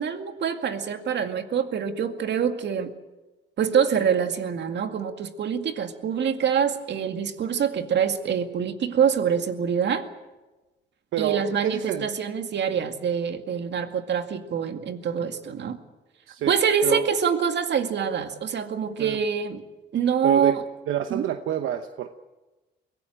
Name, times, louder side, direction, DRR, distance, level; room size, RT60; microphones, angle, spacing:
voice 1, 0.0-2.9 3.6-10.1 11.2-15.8 16.5-19.6 19.9-20.7 21.1-21.2, right 7 dB, 60° right, 7 dB, 2.1 m, -25 dB
voice 2, 11.1-12.1 16.3-17.1 19.0-19.2 20.2-20.5 20.9-22.1, right 11 dB, 85° right, 8 dB, 1.0 m, -28 dB
23.0 x 17.5 x 9.0 m, 1.1 s
cardioid pair, 90°, 20 cm